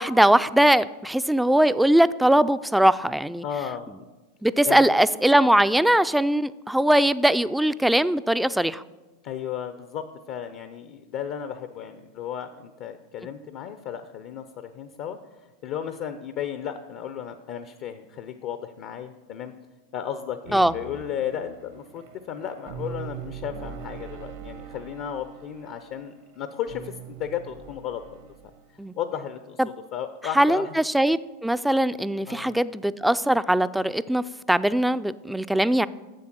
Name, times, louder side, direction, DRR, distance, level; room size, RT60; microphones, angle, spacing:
voice 1, 0.0-3.4 4.4-8.8 20.5-20.7 28.8-28.9 29.6-29.7 30.4-35.9, right 1 dB, 5° right, 15 dB, 0.3 m, -21 dB
voice 2, 3.4-4.1 4.6-4.9 9.2-14.4 14.7-15.2 15.6-19.5 19.9-26.9 27.2-28.3 28.9-29.6 29.9-30.8 32.3-32.6, left 9 dB, 55° left, 9 dB, 0.6 m, -34 dB
sound 1, 20.4-28.7, right 7 dB, 70° right, 1.1 m, -42 dB
7.7 x 7.3 x 6.0 m, 1.2 s
hypercardioid pair, 95°, 0 cm